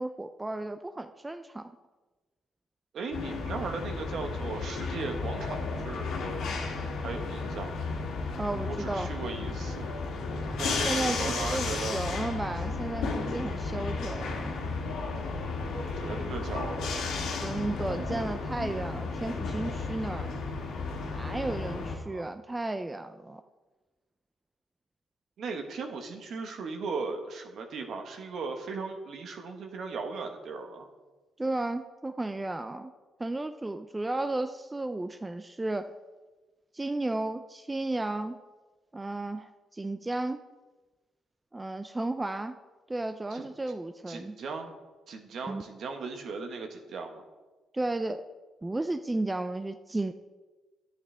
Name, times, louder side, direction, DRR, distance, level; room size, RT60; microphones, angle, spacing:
voice 1, 0.0-1.7 8.4-9.1 10.8-14.5 17.4-20.3 21.1-23.4 31.4-32.9 33.2-35.9 36.7-38.4 38.9-40.4 41.5-42.5 42.9-44.4 45.5-45.6 47.7-48.2 48.6-50.1, right 2 dB, 15° right, 9 dB, 0.4 m, -33 dB
voice 2, 2.9-6.1 7.0-7.7 8.8-9.9 10.6-12.0 15.9-17.0 22.0-22.2 25.4-30.9 43.3-43.5 44.1-44.7 45.1-47.2, right 4 dB, 65° right, 5 dB, 1.2 m, -37 dB
sound 1, 3.1-22.0, left 3 dB, 85° left, 1.7 m, -33 dB
11.0 x 8.3 x 3.4 m, 1.2 s
cardioid pair, 90°, 0 cm